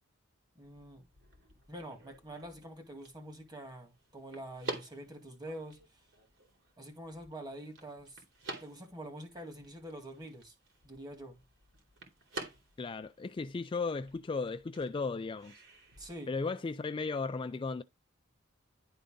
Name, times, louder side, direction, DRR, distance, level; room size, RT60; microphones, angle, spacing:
voice 1, 0.6-1.1 1.7-5.8 6.8-8.2 8.6-10.5 10.8-11.4 16.0-16.3, right 1 dB, 20° right, 2.2 m, -46 dB
sound 1, 0.6-16.1, right 2 dB, 70° right, 2.9 m, -49 dB
voice 2, 12.8-15.6 16.3-17.8, left 4 dB, 25° left, 0.3 m, -35 dB
11.0 x 3.9 x 3.7 m
head